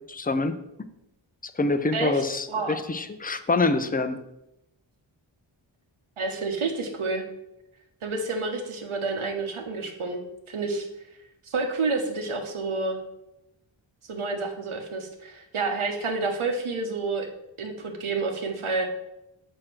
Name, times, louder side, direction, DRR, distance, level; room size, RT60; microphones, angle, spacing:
voice 1, 0.1-0.9 1.4-4.2, left 3 dB, 20° left, 10 dB, 0.7 m, -26 dB
voice 2, 6.2-7.2 8.0-10.2 10.5-10.9 11.5-13.0 14.1-17.3 17.6-18.9, right 3 dB, 80° right, 4 dB, 1.3 m, -29 dB
6.4 x 4.4 x 6.2 m, 0.89 s
cardioid pair, 45°, 49 cm